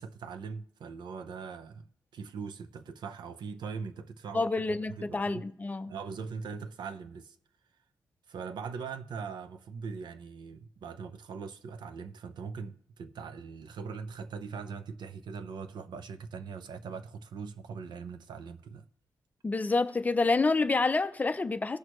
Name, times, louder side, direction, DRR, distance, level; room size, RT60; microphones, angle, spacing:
voice 1, 0.0-4.5 4.9-5.5 5.9-7.4 8.3-18.9, right 5 dB, 85° right, 0.6 m, -41 dB
voice 2, 4.3-5.9 19.4-21.8, left 3 dB, 20° left, 0.4 m, -28 dB
17.0 x 6.2 x 3.0 m
wide cardioid pair, 165°, 7 cm